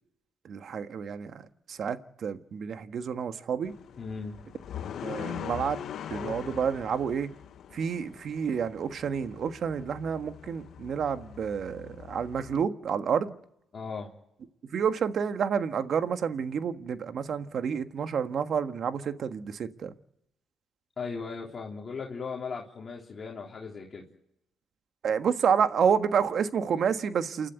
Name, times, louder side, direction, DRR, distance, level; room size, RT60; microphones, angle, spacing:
voice 1, 0.4-1.4 1.7-3.7 5.0-5.8 6.1-7.3 7.7-13.4 14.7-19.9 25.0-27.5, right 7 dB, 60° right, 1.5 m, -29 dB
sound 1, 3.7-12.6, left 9 dB, 70° left, 1.2 m, -42 dB
voice 2, 4.0-4.4 13.7-14.1 21.0-24.0, left 5 dB, 40° left, 3.5 m, -37 dB
29.0 x 12.0 x 9.3 m
cardioid pair, 90°, 0 cm